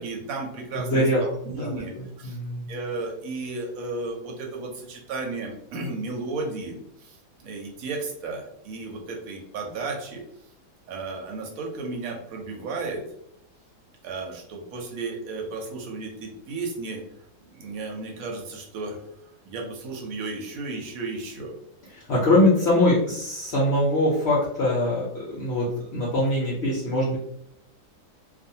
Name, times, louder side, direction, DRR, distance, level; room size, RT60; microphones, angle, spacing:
voice 1, 0.0-1.9 2.2-2.4 2.7-10.2 10.9-13.0 14.0-17.0 17.5-19.0 19.5-21.5, right 3 dB, 65° right, 1 dB, 1.0 m, -34 dB
voice 2, 0.7-1.2 1.6-2.6 21.9-27.2, left 1 dB, 65° left, -5 dB, 0.7 m, -23 dB
2.5 x 2.3 x 2.7 m, 0.73 s
omnidirectional pair, 1.8 m